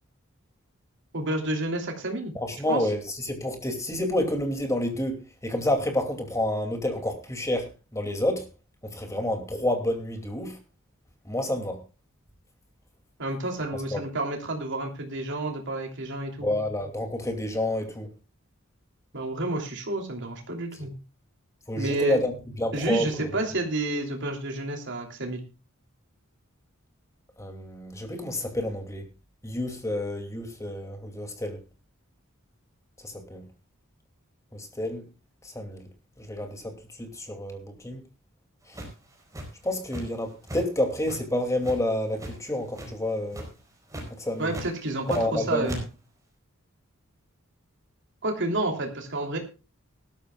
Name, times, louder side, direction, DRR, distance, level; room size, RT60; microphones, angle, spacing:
voice 1, 1.1-2.3 2.7-2.9 13.2-16.5 19.1-20.9 21.8-22.2 22.7-25.4 44.4-45.8 48.2-49.4, right 2 dB, 60° right, 3.1 m, -30 dB
voice 2, 2.3-8.5 8.8-10.6 11.2-11.8 13.9-14.0 16.4-18.1 21.7-23.3 27.4-29.0 29.4-31.6 33.0-33.4 34.5-35.0 35.4-35.9 36.2-36.7 37.0-38.0 38.7-38.8 39.6-43.5 44.2-44.6 45.1-45.8, left 1 dB, 15° left, 2.5 m, -29 dB
sound 1, 38.7-40.2 40.5-40.6 41.0-42.3 42.7-43.0 43.3-43.6 43.9-44.1 44.5-45.4 45.6-45.8, equal, 15° right, 4.3 m, -37 dB
19.5 x 12.5 x 2.4 m
head